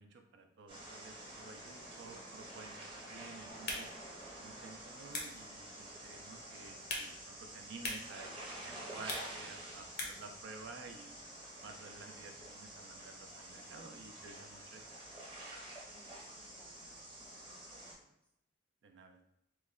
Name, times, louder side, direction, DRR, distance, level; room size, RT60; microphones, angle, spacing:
voice 1, 0.0-3.9 4.4-11.2 11.6-14.8 18.8-19.2, right 4 dB, 60° right, 5 dB, 0.4 m, -52 dB
sound 1, 0.7-17.9, right 1 dB, 25° right, 0.8 m, -49 dB
voice 2, 2.0-2.5 15.9-18.1, equal, 5° left, -2 dB, 0.5 m, -66 dB
sound 2, 3.5-10.4, left 2 dB, 55° left, 0.7 m, -46 dB
3.0 x 2.1 x 3.5 m, 0.80 s
head